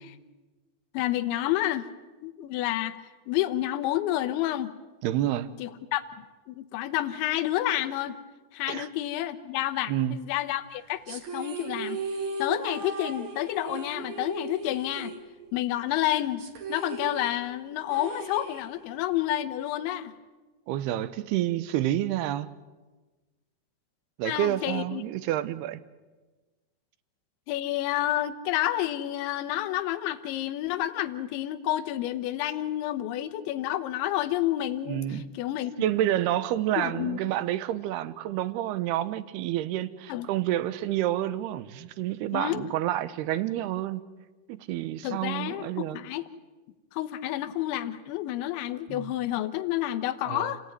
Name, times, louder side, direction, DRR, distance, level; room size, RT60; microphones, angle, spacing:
voice 1, 0.9-1.9 2.2-3.0 3.3-4.7 5.6-6.0 6.5-8.2 8.5-12.0 12.4-15.1 15.5-16.4 16.7-20.1 24.2-25.0 27.5-35.7 36.8-37.2 40.1-40.3 42.3-42.6 45.0-46.2 46.9-50.6, left 14 dB, 80° left, 9 dB, 3.4 m, -29 dB
voice 2, 5.0-5.5 8.7-8.9 9.9-10.2 20.7-22.5 24.2-25.8 34.9-35.2 35.8-44.0 44.5-46.0 48.9-49.1 50.3-50.5, right 13 dB, 75° right, 14 dB, 2.7 m, -29 dB
sound 1, 11.1-15.7 16.0-16.1 16.4-19.0, right 3 dB, 50° right, 2.9 m, -37 dB
29.5 x 18.0 x 9.5 m, 1.2 s
omnidirectional pair, 5.3 m